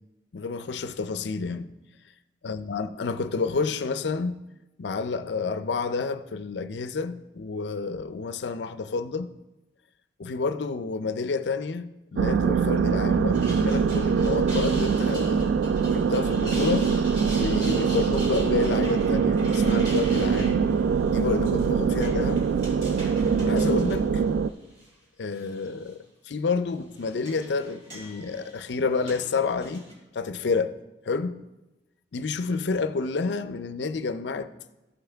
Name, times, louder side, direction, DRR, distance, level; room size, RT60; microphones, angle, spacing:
voice 1, 0.3-1.7 2.4-4.3 4.8-9.3 10.2-15.5 15.9-16.9 17.4-20.6 21.1-22.5 23.4-24.2 25.2-26.0 26.3-29.8 30.1-30.7 31.1-31.4 32.1-34.5, left 4 dB, 70° left, 0.5 m, -29 dB
sound 1, 12.1-24.5, right 6 dB, 85° right, 0.3 m, -23 dB
sound 2, 13.1-24.9 25.3-25.9 26.7-29.9, equal, 40° right, 3.0 m, -43 dB
14.5 x 5.7 x 3.4 m
head